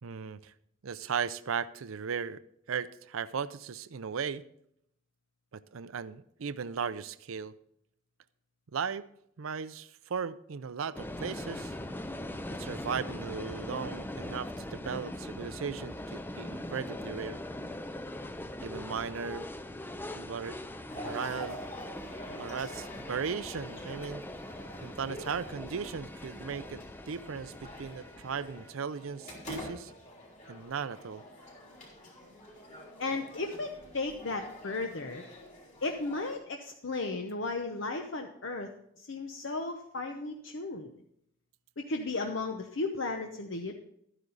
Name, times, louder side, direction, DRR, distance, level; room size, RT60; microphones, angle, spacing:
voice 1, 0.0-0.5 0.8-2.4 2.7-4.4 5.5-7.5 8.7-9.1 9.4-11.7 12.6-17.4 18.6-19.4 20.2-20.6 20.9-21.6 22.3-24.2 24.8-29.9 30.5-31.2, right 6 dB, 80° right, 15 dB, 0.5 m, -37 dB
sound 1, 10.9-28.7, left 1 dB, 10° left, 0.4 m, -41 dB
sound 2, 20.9-36.4, left 1 dB, 35° left, 3.6 m, -47 dB
voice 2, 33.0-35.2 35.8-40.9 41.8-43.7, left 3 dB, 65° left, 4 dB, 0.9 m, -35 dB
12.5 x 9.9 x 4.0 m, 0.72 s
head